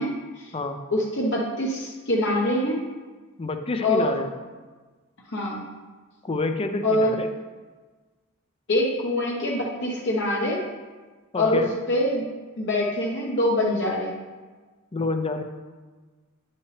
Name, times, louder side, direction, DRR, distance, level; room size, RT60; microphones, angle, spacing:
voice 1, 0.0-0.5 0.9-2.8 3.8-4.1 5.3-5.6 6.8-7.2 8.7-10.6 11.4-12.3 12.6-14.1, left 1 dB, 55° left, -3 dB, 1.0 m, -24 dB
voice 2, 3.4-4.3 6.2-7.3 11.3-11.7 14.9-15.4, left 3 dB, 25° left, 6 dB, 0.5 m, -28 dB
9.7 x 5.5 x 3.3 m, 1.3 s
head